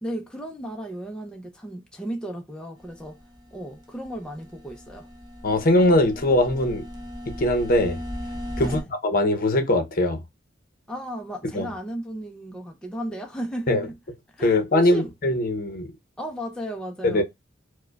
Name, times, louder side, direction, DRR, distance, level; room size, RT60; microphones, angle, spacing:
voice 1, 0.0-3.2 3.5-5.1 8.6-8.9 10.9-13.9 14.3-15.1 16.2-17.2, right 1 dB, 5° left, 0.4 m, -34 dB
sound 1, 2.8-8.8, equal, 20° right, 0.8 m, -37 dB
voice 2, 5.4-6.8 7.3-8.0 8.6-10.2 11.5-11.7 13.7-13.9 14.4-15.9 17.0-17.2, left 1 dB, 50° left, 0.7 m, -21 dB
4.7 x 2.1 x 2.3 m
head